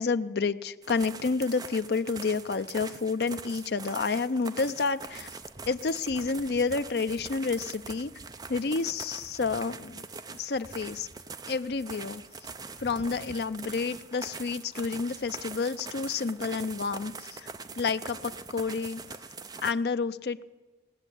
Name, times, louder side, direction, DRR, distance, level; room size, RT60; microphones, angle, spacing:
voice 1, 0.0-5.3 5.7-8.1 8.5-11.1 11.5-12.2 12.8-17.5 17.8-19.0 19.6-20.5, left 4 dB, 70° left, 12 dB, 0.5 m, -30 dB
sound 1, 0.8-19.7, right 4 dB, 20° right, 0.6 m, -43 dB
18.5 x 7.0 x 9.9 m, 1.4 s
head